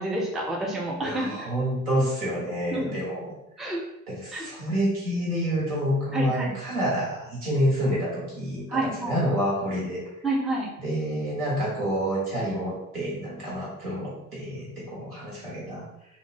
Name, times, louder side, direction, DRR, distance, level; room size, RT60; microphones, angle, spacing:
voice 1, 0.0-1.5 2.7-3.0 3.6-3.8 4.3-4.5 6.1-6.6 8.7-9.2 10.2-10.7, right 1 dB, ahead, -1 dB, 0.4 m, -29 dB
voice 2, 1.0-3.2 4.1-10.0 10.8-15.9, equal, 85° right, -7 dB, 1.2 m, -28 dB
3.0 x 2.0 x 2.8 m, 0.84 s
figure-of-eight pair, 60°, 43 cm